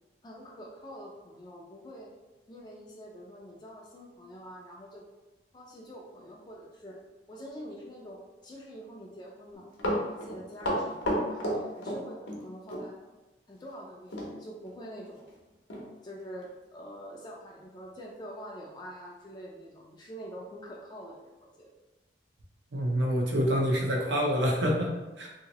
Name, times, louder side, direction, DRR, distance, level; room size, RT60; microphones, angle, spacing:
voice 1, 0.2-2.1 2.5-5.1 5.5-7.0 7.3-9.6 10.0-11.0 11.3-13.0 13.5-15.2 16.0-21.7, equal, 25° left, -3 dB, 0.4 m, -45 dB
Run, 9.5-12.4 12.7-12.9 14.1-14.3 14.7-14.8 15.3-15.4 15.7-15.9 16.4-16.5, equal, 75° left, 0.7 m, -31 dB
voice 2, 22.7-25.3, equal, 80° right, -1 dB, 0.7 m, -27 dB
2.8 x 2.8 x 2.9 m, 1.1 s
head